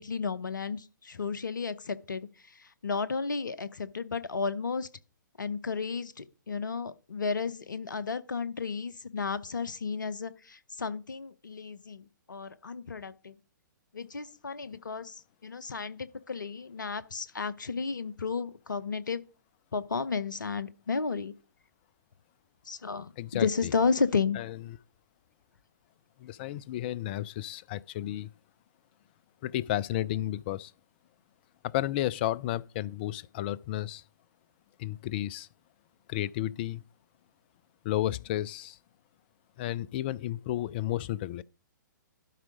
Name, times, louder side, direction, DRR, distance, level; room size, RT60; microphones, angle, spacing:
voice 1, 0.0-2.3 2.8-4.9 5.4-13.3 13.9-19.2 19.7-21.3 22.7-24.4, left 5 dB, 70° left, 0.7 m, -33 dB
voice 2, 23.2-23.7 24.3-24.6 26.2-28.3 29.4-30.7 31.6-34.0 34.8-35.5 36.1-36.8 37.8-38.8 39.6-41.4, left 13 dB, 30° left, 0.3 m, -32 dB
12.0 x 4.6 x 5.1 m
figure-of-eight pair, 120°, 11 cm